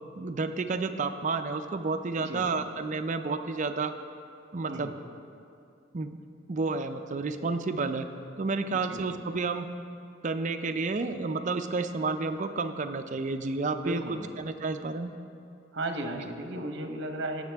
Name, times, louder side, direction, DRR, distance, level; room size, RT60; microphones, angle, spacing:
voice 1, 0.2-3.9 4.5-4.9 5.9-6.1 6.5-8.1 8.4-9.7 10.2-14.0 14.4-15.1 16.1-16.2, right 3 dB, 40° right, 7 dB, 0.5 m, -30 dB
voice 2, 4.7-5.0 8.7-9.0 13.8-14.3 15.7-17.4, right 1 dB, 60° right, 5 dB, 0.9 m, -35 dB
18.0 x 6.6 x 3.5 m, 2.5 s
head